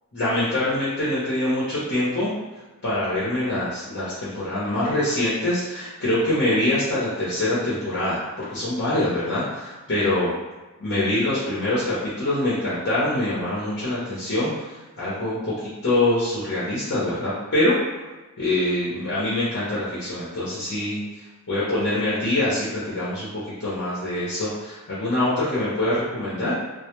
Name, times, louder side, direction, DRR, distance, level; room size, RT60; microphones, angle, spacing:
voice 1, 0.1-2.3 2.8-10.3 10.8-14.5 15.0-17.7 18.4-21.0 21.5-26.5, left 1 dB, 60° left, -9 dB, 0.7 m, -24 dB
2.1 x 2.1 x 3.0 m, 1.2 s
head